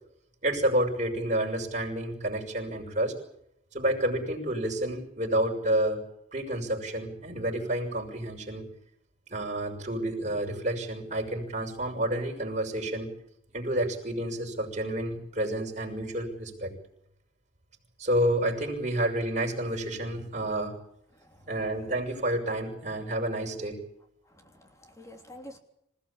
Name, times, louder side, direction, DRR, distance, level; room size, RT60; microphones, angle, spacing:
voice 1, 0.4-3.1 3.7-6.0 6.3-8.7 9.3-13.1 13.5-16.7 18.0-20.7 21.5-23.8, right 1 dB, 40° right, 1 dB, 6.3 m, -29 dB
voice 2, 24.3-25.6, left 1 dB, 15° left, 4 dB, 3.3 m, -48 dB
26.5 x 17.0 x 8.7 m, 0.77 s
head